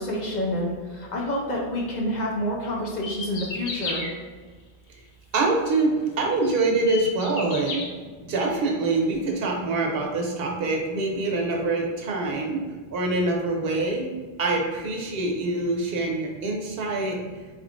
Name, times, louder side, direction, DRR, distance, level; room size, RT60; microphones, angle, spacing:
voice 1, 0.0-4.1 8.2-8.3, left 1 dB, 50° left, -2 dB, 0.6 m, -28 dB
sound 1, 2.9-4.1 5.8-5.9 6.4-7.8, left 3 dB, 90° left, 1.0 m, -33 dB
voice 2, 5.3-7.8 8.3-12.6 12.9-14.1 14.4-17.2, right 3 dB, 65° right, 1 dB, 0.9 m, -25 dB
4.0 x 3.6 x 2.4 m, 1.4 s
omnidirectional pair, 1.1 m